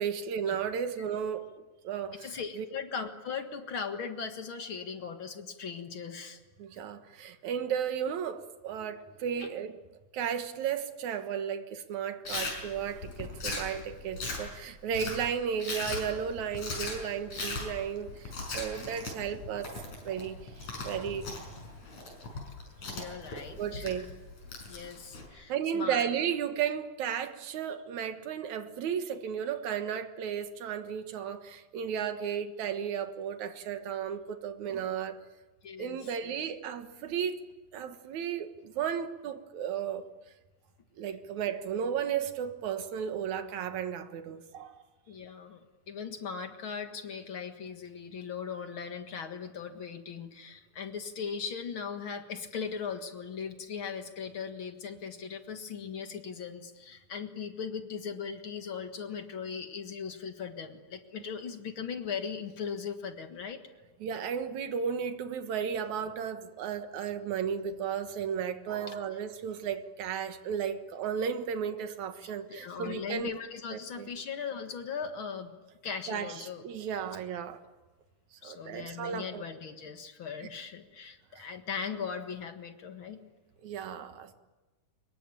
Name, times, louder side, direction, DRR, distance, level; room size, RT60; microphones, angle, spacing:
voice 1, 0.0-1.5 1.8-2.7 6.6-9.8 10.1-21.3 23.6-24.1 25.5-35.2 35.8-37.4 37.7-40.1 41.0-44.8 64.0-73.3 73.7-74.1 76.1-77.6 78.4-79.4 80.4-80.5 81.4-81.5 83.6-84.3, right 8 dB, 70° right, 2.8 m, -34 dB
voice 2, 2.2-6.4 9.4-9.5 22.5-22.6 22.9-23.9 24.7-26.1 35.6-36.3 45.1-63.6 68.9-69.0 72.2-75.5 75.8-76.6 78.4-83.3, left 6 dB, 45° left, 2.1 m, -39 dB
Chewing mastication, 12.3-25.3, left 3 dB, 65° left, 7.0 m, -39 dB
25.5 x 22.5 x 9.0 m
omnidirectional pair, 3.5 m